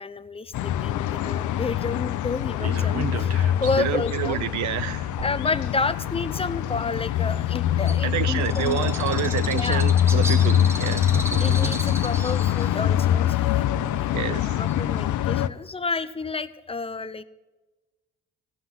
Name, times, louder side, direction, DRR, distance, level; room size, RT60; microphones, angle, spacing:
voice 1, 0.0-4.4 5.2-8.9 9.5-9.9 11.4-13.7 14.0-14.1 14.6-17.2, left 4 dB, 20° left, 0.7 m, -30 dB
sound 1, 0.5-15.5, left 11 dB, 75° left, 0.7 m, -24 dB
sound 2, 0.8-6.2 7.1-8.6 9.4-9.5 10.5-10.6 10.9-12.1 13.1-14.2 14.6-14.7 15.0-15.1, right 5 dB, 55° right, 1.5 m, -38 dB
voice 2, 3.8-5.1 8.0-11.0 14.1-14.6, right 12 dB, 70° right, 0.6 m, -28 dB
Bird, 7.8-15.1, right 1 dB, 10° right, 1.2 m, -36 dB
16.5 x 5.9 x 7.2 m
cardioid pair, 90°, 30 cm